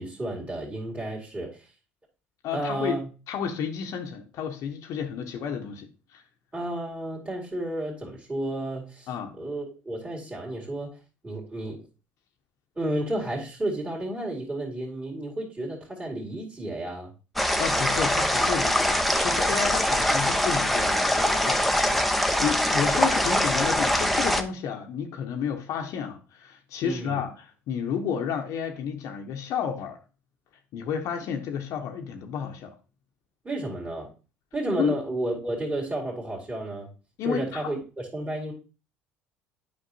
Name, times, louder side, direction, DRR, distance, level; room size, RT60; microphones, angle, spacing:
voice 1, 0.0-1.7 2.5-3.1 6.5-9.1 9.4-10.9 11.2-11.8 12.8-17.1 26.8-27.2 33.4-34.1 34.5-36.9 37.2-38.5, right 1 dB, 20° right, -4 dB, 2.3 m, -32 dB
voice 2, 2.4-3.0 3.3-6.2 9.1-9.4 17.6-21.7 22.1-30.0 30.7-32.7 34.8-35.0 37.2-37.7, left 7 dB, 60° left, 3 dB, 0.9 m, -31 dB
sound 1, 17.4-24.4, left 1 dB, ahead, 0.7 m, -23 dB
8.4 x 5.2 x 2.6 m, 0.33 s
hypercardioid pair, 70°, 6 cm